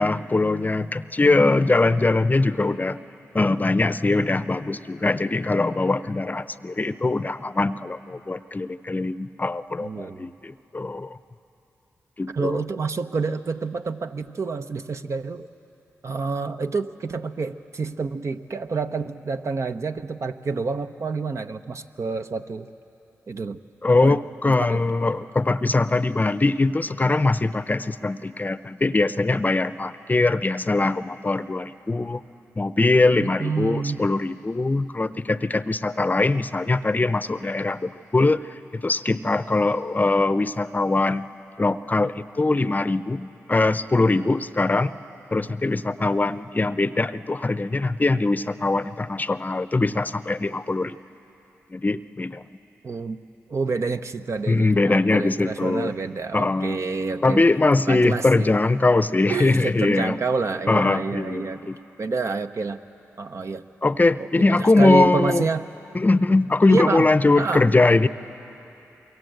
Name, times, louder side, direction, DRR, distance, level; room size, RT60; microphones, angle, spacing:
voice 1, 0.0-3.0 3.3-11.2 12.2-12.6 23.8-32.2 32.6-41.3 41.6-44.9 45.3-51.0 51.7-52.4 54.5-55.9 56.3-56.8 57.2-60.2 60.7-61.8 63.8-65.4 65.9-68.1, left 2 dB, 30° left, 14 dB, 0.7 m, -22 dB
voice 2, 9.8-10.3 12.3-15.5 16.0-22.7 23.3-23.6 24.0-24.2 24.5-24.8 33.2-34.1 52.8-53.2 53.5-57.5 57.9-58.5 59.3-61.7 62.0-62.8 63.2-63.7 64.2-65.7 66.7-67.7, right 4 dB, 55° right, 8 dB, 0.9 m, -28 dB
25.5 x 23.0 x 8.0 m, 3.0 s
cardioid pair, 50°, 6 cm